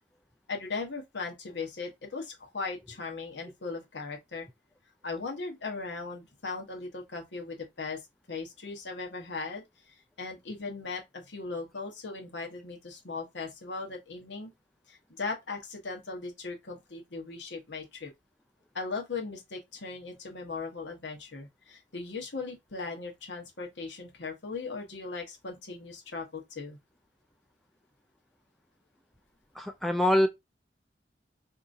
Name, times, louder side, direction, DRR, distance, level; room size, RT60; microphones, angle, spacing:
voice 1, 0.5-4.5 5.0-8.0 8.3-14.5 14.9-18.1 18.7-26.8, left 4 dB, 85° left, 1.2 m, -38 dB
voice 2, 29.6-30.3, left 1 dB, ahead, 0.3 m, -24 dB
3.6 x 2.9 x 2.6 m
head